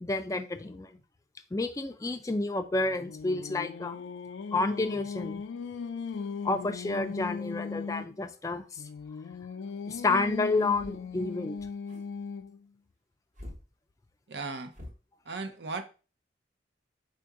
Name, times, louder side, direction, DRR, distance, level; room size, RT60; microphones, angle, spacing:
voice 1, 0.0-1.0 1.5-4.0 4.5-5.4 6.4-8.8 9.9-11.6, left 3 dB, 20° left, 0.4 m, -30 dB
Singing, 2.7-8.2 8.8-12.6, left 5 dB, 85° left, 0.4 m, -38 dB
sound 1, 10.6-11.1 11.6-12.0 13.3-13.7 14.7-14.9, left 1 dB, 40° right, 1.1 m, -46 dB
voice 2, 14.3-14.7 15.2-15.8, right 3 dB, 65° right, 0.6 m, -36 dB
4.4 x 2.6 x 4.7 m
head